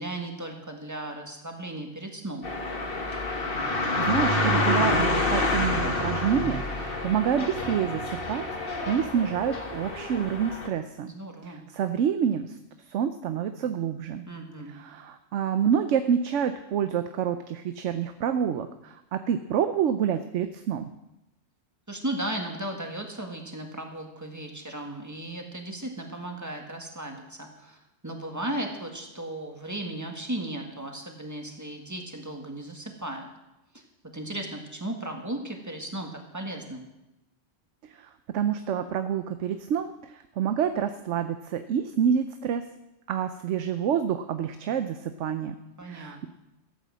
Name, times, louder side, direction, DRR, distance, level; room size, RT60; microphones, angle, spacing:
voice 1, 0.0-2.5 11.0-11.6 14.3-14.8 21.9-33.3 33.7-33.8 34.1-36.9 45.8-46.3, right 1 dB, 15° right, 2 dB, 1.8 m, -36 dB
sound 1, 2.4-10.7, left 2 dB, 50° left, 1.8 m, -28 dB
voice 2, 4.0-8.4 8.9-11.1 11.4-12.6 12.9-14.2 14.7-20.8 37.9-42.6 43.1-46.3, right 8 dB, 75° right, 9 dB, 1.0 m, -28 dB
13.5 x 8.5 x 7.6 m, 0.92 s
omnidirectional pair, 1.2 m